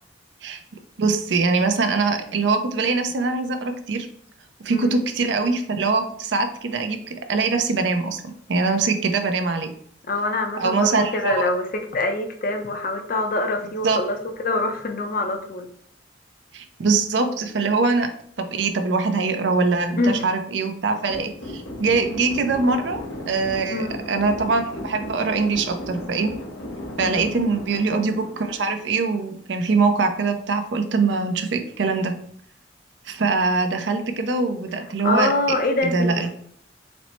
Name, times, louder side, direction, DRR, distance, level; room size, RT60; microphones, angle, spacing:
voice 1, 1.0-4.1 4.6-9.7 10.6-11.5 13.8-14.0 16.5-18.1 18.4-26.3 27.0-32.1 33.1-35.3 35.8-36.3, right 4 dB, 70° right, 7 dB, 0.5 m, -23 dB
voice 2, 10.1-15.7 20.0-20.3 23.7-24.0 27.0-27.3 35.0-36.3, left 2 dB, 50° left, 4 dB, 0.5 m, -25 dB
sound 1, 21.1-29.4, left 1 dB, 90° left, 0.8 m, -35 dB
4.2 x 2.0 x 4.3 m, 0.63 s
head